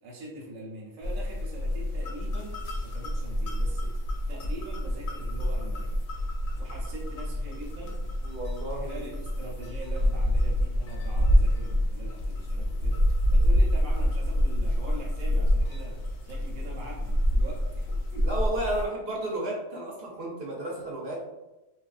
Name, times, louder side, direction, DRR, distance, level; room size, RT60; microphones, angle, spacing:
voice 1, 0.0-3.9 4.3-6.0 6.6-8.1 8.7-18.3, right 1 dB, 85° right, -3 dB, 1.1 m, -43 dB
sound 1, 1.0-18.8, equal, 90° left, 1.0 m, -27 dB
voice 2, 8.2-9.1 18.2-21.2, right 1 dB, 55° right, -2 dB, 0.7 m, -33 dB
3.1 x 2.3 x 2.3 m, 1.0 s
omnidirectional pair, 1.4 m